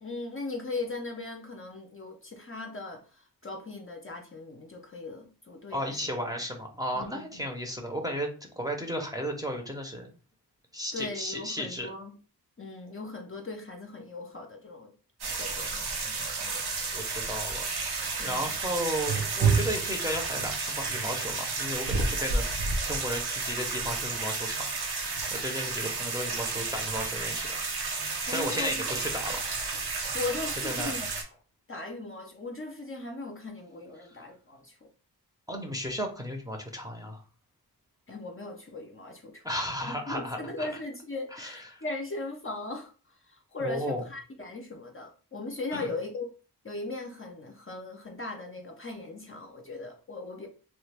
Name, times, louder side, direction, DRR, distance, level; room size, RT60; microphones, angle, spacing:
voice 1, 0.0-6.0 6.9-7.5 10.9-12.2 12.6-14.9 15.4-15.8 18.2-18.5 28.3-28.8 30.1-31.1 31.7-34.9 38.1-39.4 40.1-46.3 46.6-50.5, left 3 dB, 35° left, 2 dB, 0.6 m, -38 dB
voice 2, 5.7-8.3 8.6-10.1 10.7-11.9 16.0-16.1 16.4-16.6 16.9-17.6 18.2-24.8 25.3-27.6 28.3-29.6 30.6-31.0 35.5-37.2 39.4-40.7 41.3-41.8 43.6-44.0 45.7-45.9, equal, 10° right, 2 dB, 0.7 m, -34 dB
sound 1, 15.2-31.2, right 4 dB, 70° right, 0.8 m, -31 dB
3.2 x 2.2 x 3.3 m, 0.37 s
wide cardioid pair, 75°, 39 cm